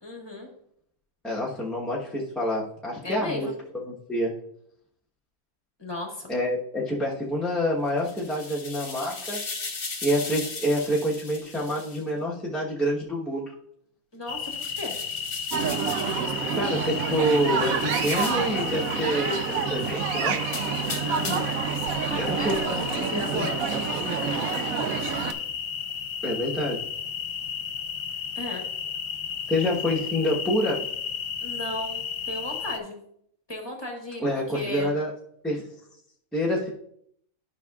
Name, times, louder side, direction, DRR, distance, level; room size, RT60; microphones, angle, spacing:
voice 1, 0.0-0.5 3.0-3.5 5.8-6.3 14.1-15.0 21.0-21.5 21.9-24.6 28.3-28.6 31.4-33.0 33.5-34.9, left 1 dB, 20° left, 0 dB, 1.5 m, -35 dB
voice 2, 1.2-3.5 3.9-4.3 6.3-9.4 10.0-13.5 16.6-20.4 22.2-22.5 23.0-23.5 26.2-26.8 29.5-30.8 34.2-35.1 35.4-35.6 36.3-36.7, equal, ahead, -5 dB, 1.0 m, -27 dB
sound 1, 7.9-12.0 14.4-16.2 17.7-18.5 20.4-21.6, left 4 dB, 45° left, 1.3 m, -37 dB
sound 2, 14.3-32.8, left 7 dB, 70° left, 1.1 m, -33 dB
sound 3, 15.5-25.3, right 7 dB, 90° right, 1.1 m, -28 dB
12.5 x 5.6 x 2.4 m, 0.69 s
omnidirectional pair, 1.4 m